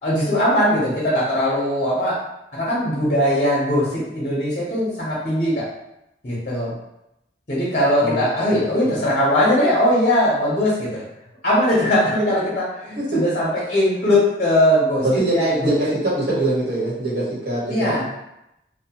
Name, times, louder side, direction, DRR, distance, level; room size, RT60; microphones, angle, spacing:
voice 1, 0.0-2.2 2.5-5.7 6.2-6.7 7.5-11.0 11.4-15.0 15.3-15.9 17.7-18.1, left 1 dB, 40° left, -7 dB, 0.7 m, -20 dB
voice 2, 8.5-9.0 13.0-13.1 15.0-18.1, right 1 dB, 60° right, -7 dB, 1.1 m, -23 dB
2.8 x 2.1 x 2.8 m, 0.86 s
head